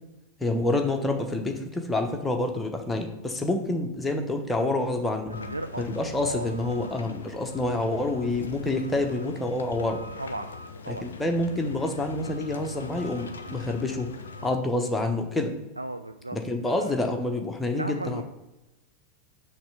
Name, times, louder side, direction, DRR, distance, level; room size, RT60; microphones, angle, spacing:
voice 1, 0.4-5.3 5.8-10.0 10.9-14.1 14.4-15.5 16.3-18.2, left 2 dB, 10° left, 3 dB, 0.9 m, -28 dB
sound 1, 5.3-14.5, left 3 dB, 70° left, 0.5 m, -41 dB
voice 2, 5.3-6.5 10.2-10.5 10.9-11.1 15.8-16.4 16.6-17.0 17.8-18.2, right 2 dB, 85° right, 8 dB, 0.3 m, -36 dB
5.8 x 3.3 x 5.8 m, 0.99 s
figure-of-eight pair, 90°, 0 cm